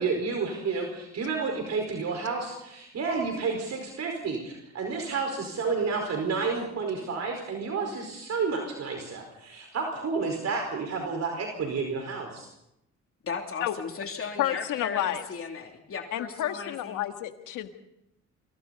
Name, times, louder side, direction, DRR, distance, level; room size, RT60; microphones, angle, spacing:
voice 1, 0.0-12.5, right 4 dB, 60° right, 2 dB, 4.9 m, -30 dB
voice 2, 13.2-17.0, left 5 dB, 45° left, 2 dB, 3.1 m, -36 dB
voice 3, 14.4-15.3 16.1-17.7, left 12 dB, 90° left, 7 dB, 1.7 m, -30 dB
29.5 x 25.0 x 4.2 m, 0.82 s
cardioid pair, 90°, 30 cm